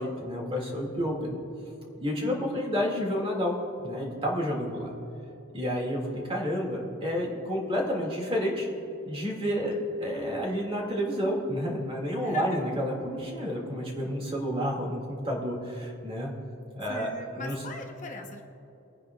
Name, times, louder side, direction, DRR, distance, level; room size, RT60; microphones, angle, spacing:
voice 1, 0.0-1.4 2.0-4.9 5.5-8.7 9.0-9.7 10.0-16.3 16.8-17.6, equal, 25° right, -1 dB, 2.0 m, -30 dB
voice 2, 2.2-2.6 9.5-9.8 12.2-12.7 16.9-18.4, left 3 dB, 35° left, 3 dB, 0.8 m, -41 dB
24.5 x 9.7 x 2.3 m, 3.0 s
head